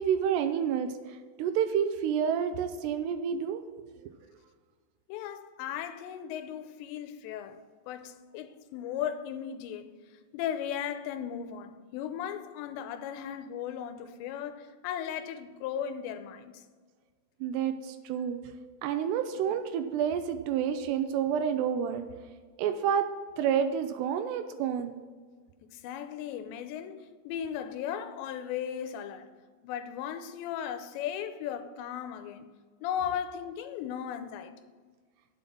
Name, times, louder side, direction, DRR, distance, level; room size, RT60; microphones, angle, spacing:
voice 1, 0.0-3.6 17.4-22.1 22.6-23.1 23.4-25.0, right 8 dB, 80° right, 2.6 m, -29 dB
voice 2, 5.1-7.6 7.9-9.9 10.3-16.6 25.7-29.3 29.6-32.5 32.8-34.5, left 9 dB, 85° left, 2.9 m, -36 dB
9.3 x 7.2 x 6.0 m
omnidirectional pair, 5.1 m